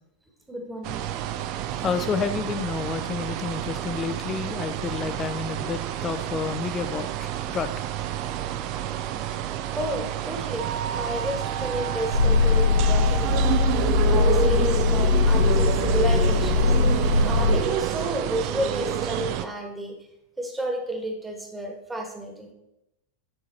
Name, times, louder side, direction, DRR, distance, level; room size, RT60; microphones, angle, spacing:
voice 1, 0.5-1.1 9.7-16.8 17.2-19.9 20.4-22.5, right 1 dB, 10° right, 2 dB, 1.4 m, -31 dB
sound 1, 0.8-19.4, right 10 dB, 40° right, 0.4 m, -29 dB
voice 2, 1.8-7.7, left 5 dB, 25° left, 10 dB, 0.6 m, -30 dB
sound 2, 12.1-17.6, left 4 dB, 70° right, 1.8 m, -21 dB
8.9 x 3.8 x 4.1 m, 0.86 s
figure-of-eight pair, 90°, 0 cm